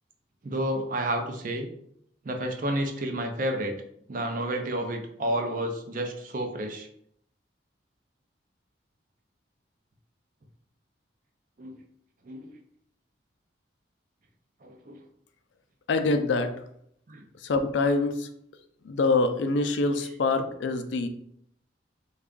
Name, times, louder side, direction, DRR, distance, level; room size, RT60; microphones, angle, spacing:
voice 1, 0.4-1.7 2.2-3.7 4.1-6.9 11.6-11.7 12.2-12.5 14.6-15.0 17.1-17.2, right 1 dB, 45° right, 4 dB, 0.5 m, -30 dB
voice 2, 15.9-16.5 17.4-18.3 18.8-21.1, left 3 dB, 75° left, 8 dB, 0.4 m, -25 dB
3.3 x 2.3 x 3.7 m, 0.71 s
head